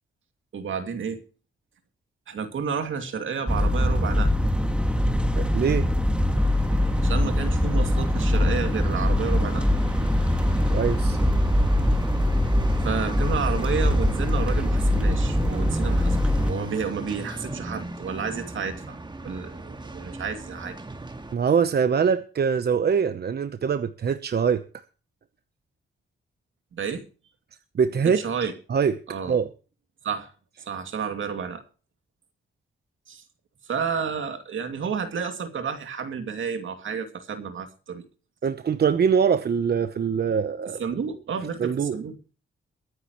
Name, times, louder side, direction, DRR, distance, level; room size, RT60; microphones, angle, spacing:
voice 1, 0.5-1.2 2.3-4.3 7.0-9.7 12.8-16.2 16.5-19.0 19.2-20.8 26.7-27.0 28.0-28.5 29.1-29.4 30.0-30.3 30.7-31.6 33.1-33.2 33.7-38.0 40.8-42.2, right 6 dB, 75° right, 2.5 m, -31 dB
sound 1, 3.5-16.5, left 1 dB, 5° right, 2.1 m, -22 dB
voice 2, 5.4-5.9 10.7-11.2 21.3-24.6 27.7-28.9 29.3-29.5 38.4-40.8 41.6-42.0, right 6 dB, 55° right, 0.9 m, -23 dB
sound 2, 6.3-21.3, right 2 dB, 20° right, 1.8 m, -37 dB
22.5 x 9.8 x 3.1 m
cardioid pair, 100°, 20 cm